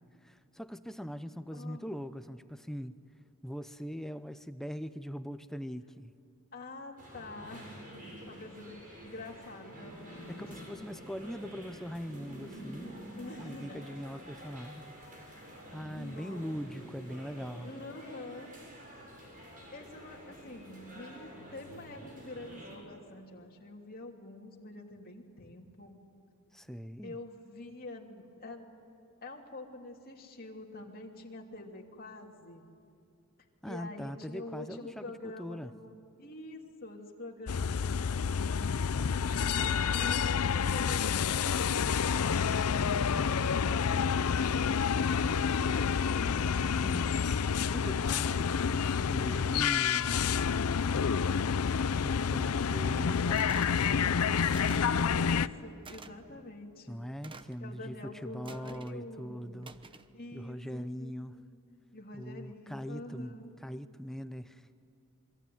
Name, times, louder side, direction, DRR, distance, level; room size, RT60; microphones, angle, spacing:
voice 1, 0.2-3.0 3.4-6.1 10.3-13.1 13.4-14.9 15.7-17.7 26.5-27.2 33.6-35.7 43.1-43.5 46.7-47.3 47.6-50.3 52.0-54.3 56.9-59.7 60.3-61.4 62.1-64.7, equal, ahead, 11 dB, 0.7 m, -41 dB
voice 2, 1.5-1.8 6.5-10.4 13.1-13.8 15.9-16.5 17.6-18.5 19.7-26.0 27.0-28.7 29.2-32.7 33.6-38.7 39.5-42.0 43.2-46.1 54.6-57.1 57.6-59.7 60.1-61.1 61.9-63.5, left 2 dB, 45° left, 0 dB, 2.9 m, -46 dB
sound 1, 7.0-22.8, equal, 40° right, 7.5 m, -48 dB
sound 2, 37.5-55.5, left 6 dB, 80° left, 0.6 m, -29 dB
sound 3, 53.4-53.8 54.5-54.9 55.8-56.1 57.2-57.6 58.4-59.0 59.6-60.1, right 4 dB, 25° right, 0.9 m, -49 dB
27.5 x 22.5 x 9.4 m, 2.6 s
head